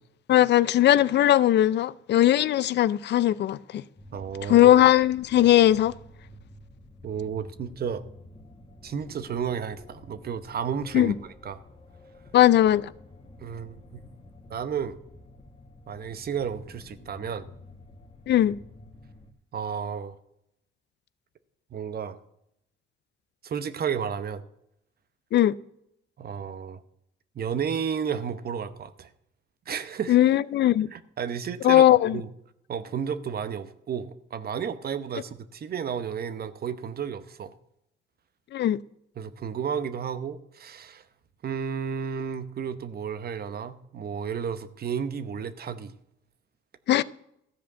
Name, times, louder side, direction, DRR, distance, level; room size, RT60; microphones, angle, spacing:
voice 1, 0.3-3.8 4.4-5.9 10.9-11.1 12.3-12.9 18.3-18.6 25.3-25.6 30.1-30.9 31.6-32.2 38.5-38.8 46.9-47.0, left 12 dB, 60° left, 0.4 m, -19 dB
sound 1, 4.0-19.3, left 2 dB, 30° left, 1.5 m, -50 dB
voice 2, 4.1-4.7 7.0-8.0 8.8-11.6 13.4-14.0 14.5-15.0 15.9-17.5 19.5-20.2 21.7-22.2 23.4-24.4 26.2-26.8 27.3-29.1 29.7-30.2 30.9-31.8 32.1-32.3 32.7-37.5 39.2-41.0 41.4-45.9, right 7 dB, 50° right, 0.9 m, -32 dB
14.0 x 5.1 x 8.1 m
cardioid pair, 90°, 20 cm